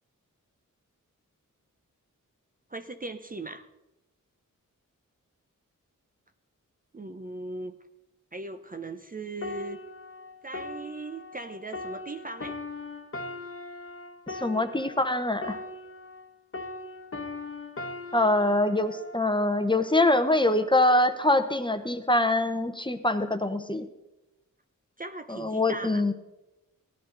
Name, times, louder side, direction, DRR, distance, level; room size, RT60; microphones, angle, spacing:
voice 1, 2.7-3.7 6.9-7.8 8.3-9.8 10.4-12.6 25.0-26.0, right 2 dB, 25° right, 8 dB, 0.7 m, -38 dB
sound 1, 9.4-16.3 16.5-20.1 20.8-21.0, left 2 dB, 40° left, 1.2 m, -40 dB
voice 2, 14.3-15.6 18.1-23.9 25.3-26.1, left 1 dB, 15° left, 9 dB, 0.9 m, -24 dB
16.5 x 11.0 x 3.9 m, 0.98 s
wide cardioid pair, 80°, 33 cm